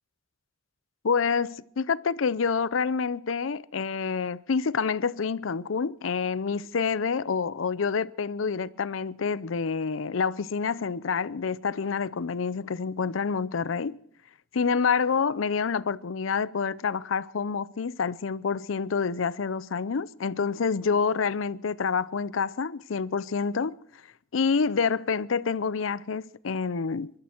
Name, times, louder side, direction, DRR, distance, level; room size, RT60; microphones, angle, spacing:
voice 1, 1.0-14.0 14.5-23.8 24.3-27.1, left 5 dB, 80° left, 0.6 m, -27 dB
25.0 x 12.5 x 4.4 m
head